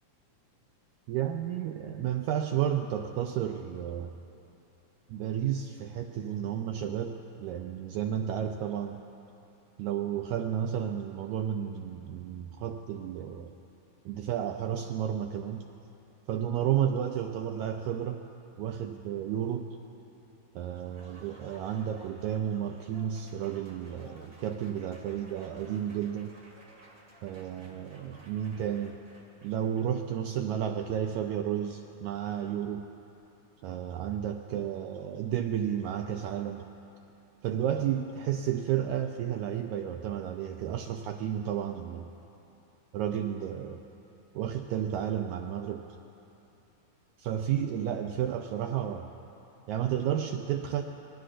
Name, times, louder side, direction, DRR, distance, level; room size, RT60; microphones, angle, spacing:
voice 1, 1.1-4.1 5.1-9.0 9.8-13.5 14.1-15.7 16.3-18.2 18.6-19.8 20.6-26.3 27.2-29.0 29.4-32.9 33.6-36.7 37.4-42.1 42.9-43.8 44.4-45.9 47.2-49.1 49.7-50.8, right 9 dB, 80° right, 4 dB, 1.7 m, -32 dB
Applause, 20.7-30.1, right 1 dB, 35° right, 1.9 m, -56 dB
24.5 x 19.0 x 2.5 m, 2.8 s
omnidirectional pair, 3.8 m